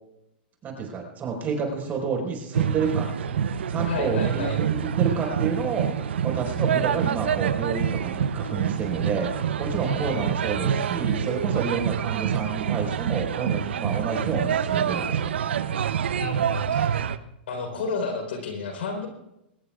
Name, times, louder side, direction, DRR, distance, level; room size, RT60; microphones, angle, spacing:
voice 1, 0.6-3.1 3.7-15.3, right 5 dB, 30° right, 0 dB, 4.8 m, -29 dB
sound 1, 2.5-17.2, right 8 dB, 85° right, 0.7 m, -26 dB
voice 2, 3.9-4.6 9.8-10.3 16.2-17.1 17.5-19.1, left 4 dB, 80° left, 5 dB, 4.1 m, -31 dB
22.0 x 19.5 x 2.4 m, 0.87 s
hypercardioid pair, 120°, 6 cm